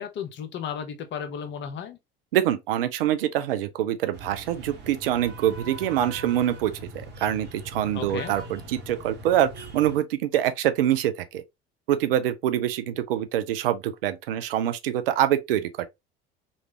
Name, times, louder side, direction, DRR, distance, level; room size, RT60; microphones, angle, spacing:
voice 1, 0.0-2.0 7.9-8.4, left 7 dB, 40° left, 0.8 m, -34 dB
voice 2, 2.3-6.7 7.2-11.4 11.9-15.9, right 11 dB, 70° right, 0.5 m, -25 dB
sound 1, 4.1-10.0, right 1 dB, 35° right, 1.2 m, -41 dB
3.1 x 2.5 x 2.9 m
figure-of-eight pair, 65°, 29 cm